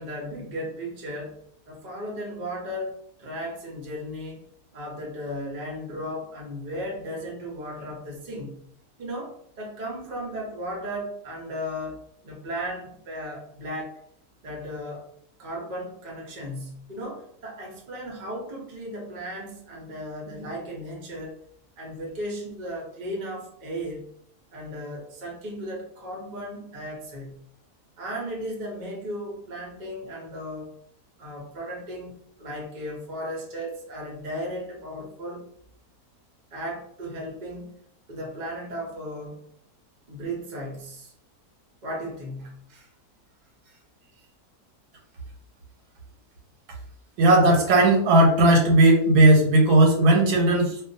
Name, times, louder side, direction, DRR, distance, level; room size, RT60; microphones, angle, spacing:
voice 1, 0.0-4.4 4.7-8.6 9.0-13.9 14.4-15.1 15.4-21.4 21.8-24.1 24.5-27.4 28.0-30.7 31.2-32.1 32.4-35.5 36.5-37.7 38.1-39.5 40.1-41.1 41.8-42.9 43.6-43.8 44.1-44.3, equal, 45° right, -1 dB, 0.6 m, -35 dB
voice 2, 47.2-50.8, right 1 dB, 85° right, 1 dB, 1.2 m, -17 dB
2.5 x 2.2 x 2.6 m, 0.67 s
omnidirectional pair, 1.7 m